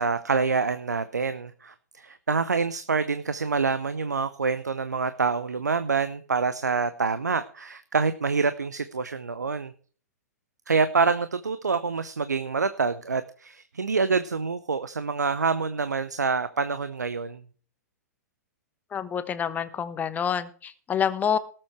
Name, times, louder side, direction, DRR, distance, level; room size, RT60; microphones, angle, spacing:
voice 1, 0.0-9.7 10.7-17.4, right 4 dB, 80° right, 13 dB, 0.8 m, -26 dB
voice 2, 18.9-21.4, left 8 dB, 15° left, 13 dB, 1.0 m, -27 dB
18.0 x 7.7 x 4.5 m, 0.43 s
figure-of-eight pair, 105°, 9 cm